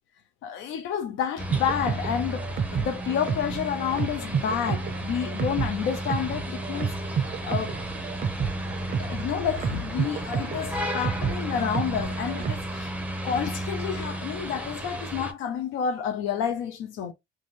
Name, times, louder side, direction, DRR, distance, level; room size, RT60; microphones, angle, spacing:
voice 1, 0.4-7.8 9.0-12.9 13.2-17.1, left 8 dB, 70° left, 0.5 m, -30 dB
sound 1, 1.4-15.3, equal, 5° right, 0.7 m, -33 dB
sound 2, 1.5-12.8, right 7 dB, 40° right, 0.5 m, -32 dB
2.5 x 2.3 x 3.1 m
supercardioid pair, 75°, 21 cm